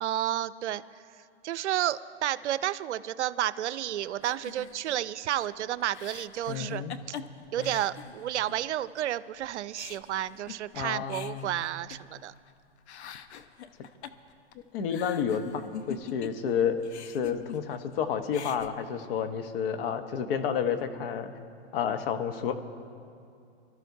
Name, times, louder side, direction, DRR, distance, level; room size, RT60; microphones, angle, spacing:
voice 1, 0.0-0.8 1.4-6.8 7.5-12.3, right 12 dB, 85° right, 16 dB, 0.5 m, -31 dB
sound 1, 4.2-8.6 9.0-9.1 9.4-12.5 12.8-16.5 16.8-18.0 18.2-18.7, left 9 dB, 75° left, 0.8 m, -44 dB
voice 2, 6.5-7.0 7.6-7.8 10.7-11.7 14.7-15.6 15.9-16.8 17.1-21.3 21.7-22.6, left 7 dB, 55° left, 8 dB, 1.0 m, -30 dB
25.0 x 12.5 x 2.7 m, 2.5 s
hypercardioid pair, 125°, 34 cm